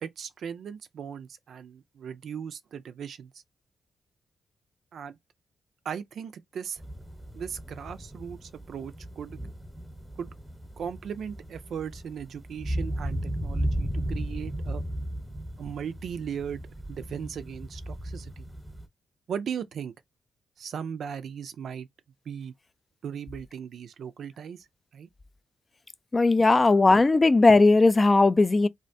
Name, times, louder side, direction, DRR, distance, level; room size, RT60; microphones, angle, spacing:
voice 1, 0.0-3.4 4.9-5.2 5.8-6.8 7.3-9.4 10.2-10.3 10.8-14.8 15.6-18.4 19.3-19.9 20.6-21.9 22.3-22.5 23.0-24.7 24.9-25.1 26.4-26.5, right 7 dB, 70° right, 0.3 m, -37 dB
sound 1, 6.8-18.9, right 1 dB, 5° right, 0.9 m, -35 dB
voice 2, 26.1-28.7, left 3 dB, 35° left, 0.3 m, -18 dB
2.4 x 2.2 x 2.5 m
supercardioid pair, 45°, 0 cm